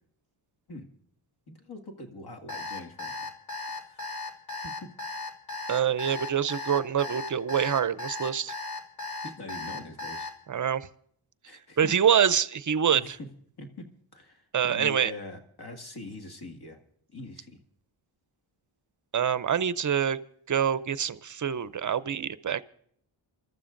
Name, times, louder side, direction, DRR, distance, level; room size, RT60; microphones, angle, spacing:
voice 1, 1.5-3.3 3.7-4.0 4.5-4.9 9.2-10.3 11.4-11.9 12.9-13.3 13.6-13.9 14.1-16.8 17.1-17.6, left 2 dB, 50° left, 4 dB, 2.0 m, -43 dB
Alarm, 2.5-10.3, left 3 dB, 70° left, 3.1 m, -36 dB
voice 2, 5.7-8.5 10.5-10.9 11.8-13.2 14.5-15.1 19.1-20.2 20.5-22.6, right 8 dB, 40° right, 16 dB, 0.5 m, -25 dB
28.0 x 13.0 x 2.5 m, 0.63 s
cardioid pair, 85°, 47 cm